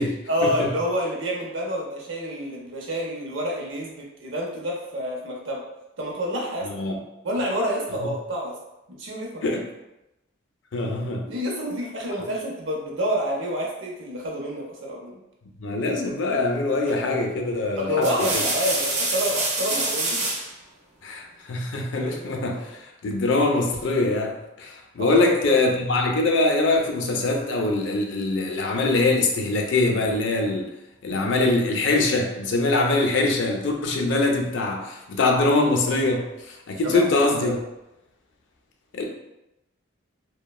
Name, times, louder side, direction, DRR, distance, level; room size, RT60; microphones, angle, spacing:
voice 1, 0.3-5.6 6.0-6.7 7.2-8.5 9.0-9.4 11.3-15.2 17.8-20.3 25.0-25.6 36.8-37.6, equal, 75° right, -1 dB, 0.6 m, -28 dB
voice 2, 6.6-7.0 8.0-8.1 9.4-9.6 10.7-11.3 15.6-18.4 21.0-24.3 24.6-30.7 31.0-37.6 38.9-39.0, left 2 dB, 70° left, 1 dB, 0.4 m, -23 dB
sound 1, 16.9-17.2 17.8-20.5 22.0-22.6, right 2 dB, 35° right, 0.4 m, -27 dB
3.0 x 2.1 x 2.3 m, 0.92 s
head